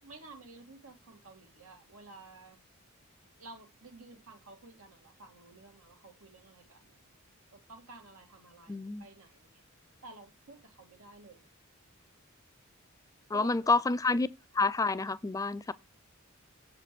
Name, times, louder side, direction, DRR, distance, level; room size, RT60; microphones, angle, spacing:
voice 1, 0.0-2.6 3.4-7.0 7.5-9.6 10.0-11.5 13.3-13.7, right 3 dB, 90° right, 2.2 m, -53 dB
voice 2, 8.7-9.1 13.3-14.3 14.5-15.7, left 3 dB, 15° left, 0.4 m, -28 dB
7.3 x 4.9 x 5.9 m
head